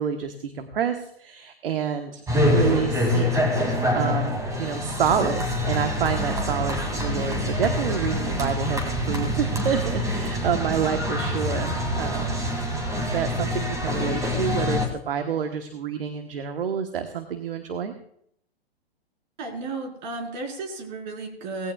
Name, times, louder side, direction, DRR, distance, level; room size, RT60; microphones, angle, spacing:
voice 1, 0.0-3.3 3.5-12.4 12.9-17.9, right 7 dB, 65° right, 6 dB, 1.3 m, -28 dB
sound 1, 2.3-14.9, left 1 dB, 10° right, 2.5 m, -25 dB
voice 2, 19.4-21.7, right 3 dB, 45° right, 2 dB, 4.6 m, -33 dB
18.5 x 15.5 x 2.4 m, 0.71 s
figure-of-eight pair, 120°, 31 cm